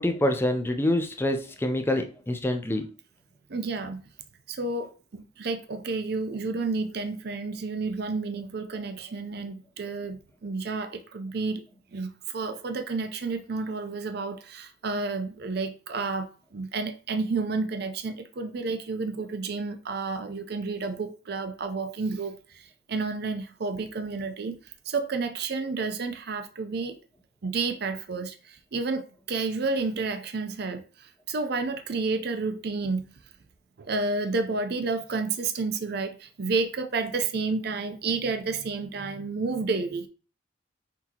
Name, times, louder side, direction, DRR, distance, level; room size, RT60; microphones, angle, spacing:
voice 1, 0.0-2.9, left 1 dB, 10° left, 0.5 m, -26 dB
voice 2, 3.5-4.0 4.5-11.6 11.9-24.6 24.9-27.0 27.4-33.1 33.8-40.1, right 3 dB, 55° right, 0.5 m, -30 dB
5.9 x 2.8 x 2.9 m
head